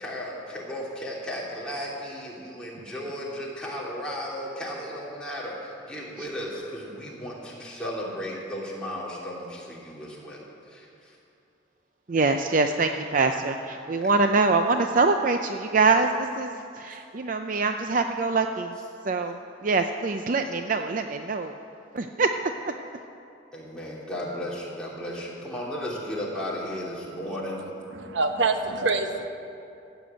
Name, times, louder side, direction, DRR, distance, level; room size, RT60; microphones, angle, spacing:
voice 1, 0.0-11.2 13.5-13.6 23.5-27.6, equal, 5° left, -6 dB, 2.9 m, -35 dB
voice 2, 12.1-18.7 19.0-21.5 21.9-22.3, right 3 dB, 45° right, 6 dB, 0.5 m, -24 dB
voice 3, 27.9-29.3, right 3 dB, 75° right, 6 dB, 1.0 m, -25 dB
14.5 x 8.1 x 9.0 m, 2.7 s
head